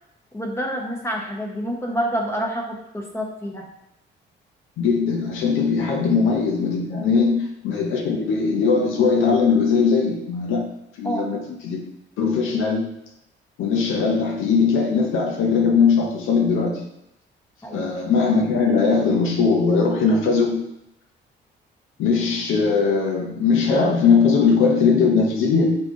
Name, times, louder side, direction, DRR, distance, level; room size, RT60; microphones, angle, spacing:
voice 1, 0.3-3.6 7.1-7.4 11.0-11.3 17.6-17.9, equal, 15° left, 0 dB, 1.0 m, -28 dB
voice 2, 4.8-10.7 11.0-11.9 12.2-12.9 13.6-16.9 17.7-20.6 22.0-25.8, left 5 dB, 85° left, 2 dB, 0.7 m, -20 dB
3.9 x 3.3 x 3.7 m, 0.84 s
cardioid pair, 90°, 20 cm